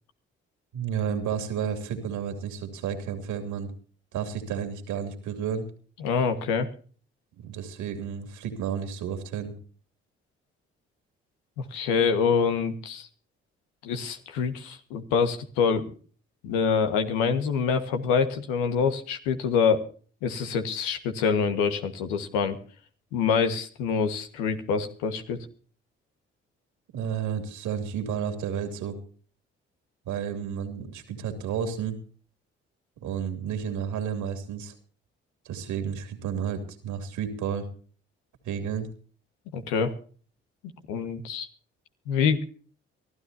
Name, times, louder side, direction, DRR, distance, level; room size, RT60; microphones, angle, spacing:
voice 1, 0.7-3.7 4.1-5.7 7.4-9.6 26.9-29.0 30.0-32.0 33.0-34.7 35.4-37.7 38.4-38.9, right 8 dB, 75° right, 7 dB, 2.9 m, -31 dB
voice 2, 6.0-6.7 11.6-13.1 13.8-15.9 16.4-19.8 20.2-22.6 23.1-25.4 39.5-39.9 40.9-41.5 42.1-42.4, left 6 dB, 85° left, 8 dB, 1.6 m, -25 dB
24.0 x 13.0 x 2.8 m, 0.41 s
hypercardioid pair, 50°, 30 cm